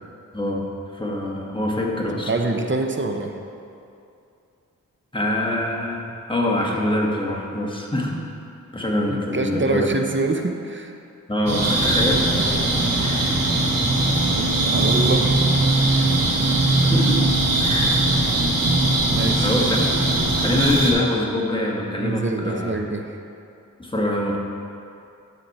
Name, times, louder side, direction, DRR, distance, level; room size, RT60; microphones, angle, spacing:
voice 1, 0.3-2.3 5.1-8.2 8.7-9.9 11.3-12.2 12.5-12.6 13.0-13.4 16.8-17.2 17.6-18.0 19.3-19.8 20.4-22.7 23.8-24.4, left 1 dB, 15° left, -2 dB, 1.5 m, -24 dB
voice 2, 2.3-3.3 9.1-10.9 12.5-13.1 14.4-15.6 15.9-16.1 19.2-19.6 22.0-23.2, right 2 dB, 35° right, 4 dB, 0.7 m, -26 dB
sound 1, 11.5-20.9, right 2 dB, 85° right, 1.5 m, -20 dB
10.5 x 6.2 x 4.2 m, 2.6 s
cardioid pair, 55°, 33 cm